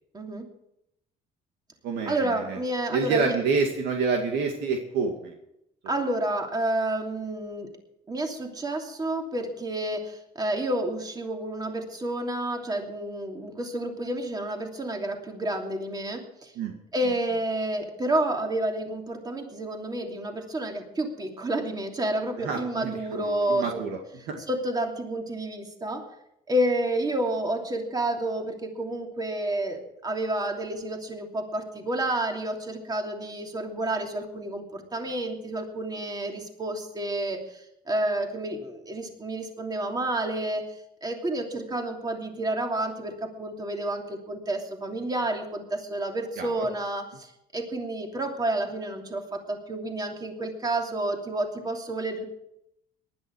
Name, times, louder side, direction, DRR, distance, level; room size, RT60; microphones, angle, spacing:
voice 1, 0.1-0.4 2.1-3.3 5.9-7.7 8.1-16.5 16.9-23.7 24.5-26.1 26.5-40.7 41.0-52.3, right 1 dB, 25° right, 2 dB, 2.9 m, -30 dB
voice 2, 1.8-2.6 2.9-5.3 16.6-16.8 17.0-17.1 22.4-24.0 24.3-24.4 46.4-46.7, right 4 dB, 80° right, 2 dB, 2.2 m, -28 dB
18.5 x 11.5 x 4.8 m, 0.79 s
cardioid pair, 110°, 17 cm